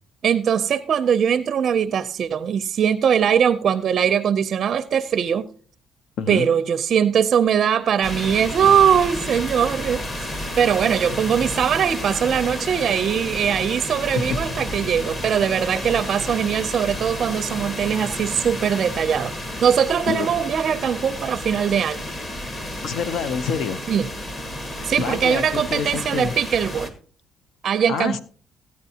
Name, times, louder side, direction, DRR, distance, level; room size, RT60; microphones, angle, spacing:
voice 1, 0.2-5.5 6.3-19.3 19.6-22.0 23.9-24.1 24.8-26.9 27.6-28.2, right 8 dB, 45° right, 0.4 m, -21 dB
voice 2, 6.2-6.5 20.1-20.3 22.8-23.8 24.7-26.3 27.9-28.2, left 6 dB, 70° left, 0.6 m, -27 dB
sound 1, 8.0-26.9, left 1 dB, 30° left, 1.6 m, -31 dB
Water, 10.9-20.2, left 1 dB, 50° left, 5.1 m, -48 dB
15.5 x 9.4 x 2.8 m
cardioid pair, 140°, 0 cm